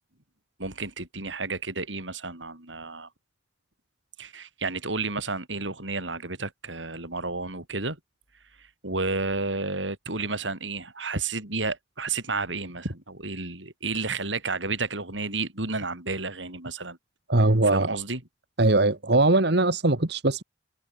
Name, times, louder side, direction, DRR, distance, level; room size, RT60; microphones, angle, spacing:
voice 1, 0.6-3.1 4.2-8.0 8.8-17.0 17.6-18.2, right 3 dB, 85° right, 6.6 m, -31 dB
voice 2, 17.3-17.9 18.6-20.4, right 2 dB, 65° right, 1.8 m, -21 dB
head